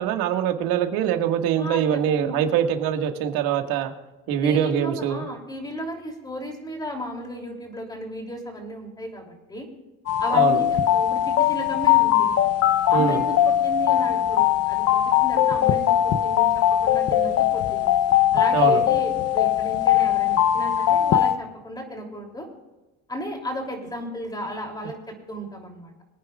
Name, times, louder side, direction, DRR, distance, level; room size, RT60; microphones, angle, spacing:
voice 1, 0.0-3.9 4.3-5.3 10.3-10.6 12.9-13.2 18.5-18.8, right 9 dB, 70° right, 5 dB, 1.9 m, -23 dB
voice 2, 1.6-2.4 4.4-9.7 10.2-12.3 12.9-17.9 18.3-22.5 23.1-25.0 25.3-25.9, equal, 10° left, 2 dB, 3.1 m, -34 dB
sound 1, 10.1-21.3, left 11 dB, 40° left, 0.8 m, -20 dB
24.0 x 9.6 x 2.4 m, 1.1 s
cardioid pair, 135°, 38 cm